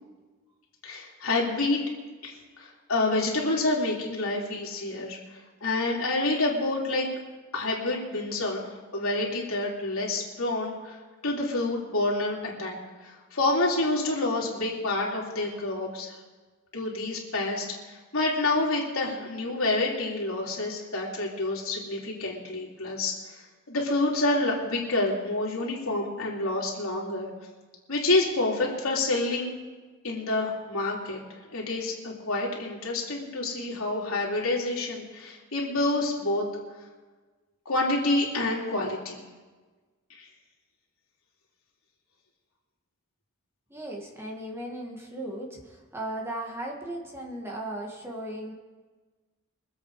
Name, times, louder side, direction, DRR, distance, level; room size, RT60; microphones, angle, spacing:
voice 1, 0.8-1.8 2.2-5.2 5.6-7.1 7.5-11.0 11.2-12.8 13.0-16.2 16.7-23.4 23.7-27.3 27.9-29.5 30.0-31.2 31.5-36.4 37.7-39.2 40.1-40.3, left 2 dB, 75° left, -3 dB, 3.4 m, -28 dB
voice 2, 43.7-48.5, right 1 dB, 10° right, -1 dB, 1.8 m, -36 dB
24.0 x 8.1 x 4.9 m, 1.3 s
head